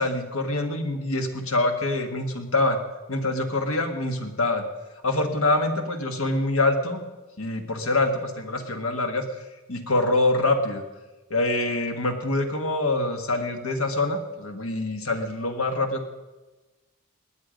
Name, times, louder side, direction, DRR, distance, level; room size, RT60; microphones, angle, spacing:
voice 1, 0.0-2.8 3.1-4.6 5.0-7.0 7.4-9.2 9.7-10.8 11.3-16.0, left 2 dB, 80° left, 6 dB, 1.6 m, -25 dB
18.5 x 9.6 x 5.2 m, 1.1 s
head